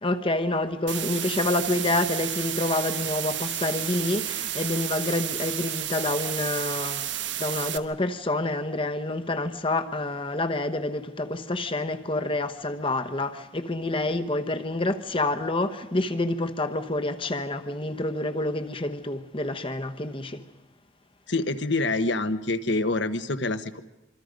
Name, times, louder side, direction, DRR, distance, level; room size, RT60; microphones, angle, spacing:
voice 1, 0.0-7.1 7.4-20.4, left 2 dB, 25° left, 1.1 m, -28 dB
sound 1, 0.9-7.8, right 11 dB, 65° right, 1.1 m, -31 dB
voice 2, 21.3-23.8, left 2 dB, 60° left, 1.2 m, -26 dB
26.0 x 25.0 x 5.2 m
head